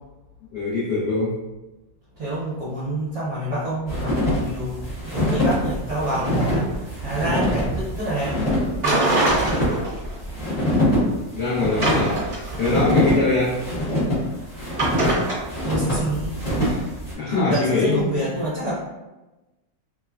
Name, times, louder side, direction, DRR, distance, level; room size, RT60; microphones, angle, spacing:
voice 1, 0.5-1.4 9.6-9.7 11.3-12.2 12.6-13.6 17.2-18.0, left 3 dB, 75° left, -9 dB, 0.6 m, -22 dB
voice 2, 2.2-4.8 5.0-8.3 8.8-9.1 15.6-18.9, right 1 dB, 60° right, -9 dB, 1.1 m, -28 dB
sound 1, 3.9-17.1, equal, 40° left, 1.1 m, -25 dB
sound 2, 8.8-10.1 10.4-10.5 11.8-12.8 14.8-15.4, right 2 dB, 35° right, 1.1 m, -22 dB
3.3 x 2.1 x 2.4 m, 1.1 s
omnidirectional pair, 2.0 m